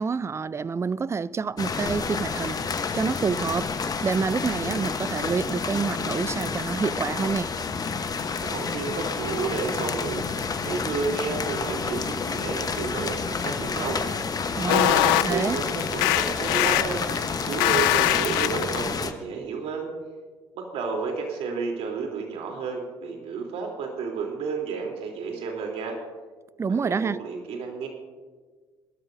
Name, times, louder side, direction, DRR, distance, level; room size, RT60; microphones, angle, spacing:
voice 1, 0.0-2.6 2.9-3.7 4.0-7.5 14.5-15.6 26.6-27.2, right 5 dB, 25° right, 0.4 m, -27 dB
sound 1, 1.6-19.1, left 5 dB, 30° left, 1.1 m, -29 dB
voice 2, 8.4-14.0 14.7-17.0 17.4-19.9 20.5-26.0 26.7-27.9, right 5 dB, 60° right, 3.4 m, -31 dB
sound 2, 14.7-18.9, left 18 dB, 75° left, 0.4 m, -22 dB
23.0 x 13.0 x 2.7 m
hypercardioid pair, 60°, 12 cm